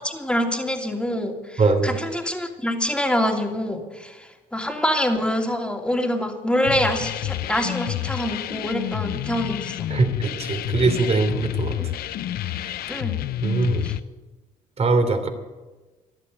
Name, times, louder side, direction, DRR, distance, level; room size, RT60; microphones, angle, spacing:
voice 1, 0.0-9.8 11.8-11.9 12.9-13.2 13.8-14.0, equal, 5° left, 2 dB, 2.9 m, -25 dB
voice 2, 1.6-1.9 9.9-11.8 13.4-13.8 14.8-15.3, right 3 dB, 40° right, 7 dB, 3.1 m, -21 dB
sound 1, 6.6-14.0, left 13 dB, 65° left, 0.6 m, -29 dB
14.0 x 11.5 x 8.0 m, 1.2 s
supercardioid pair, 65°, 17 cm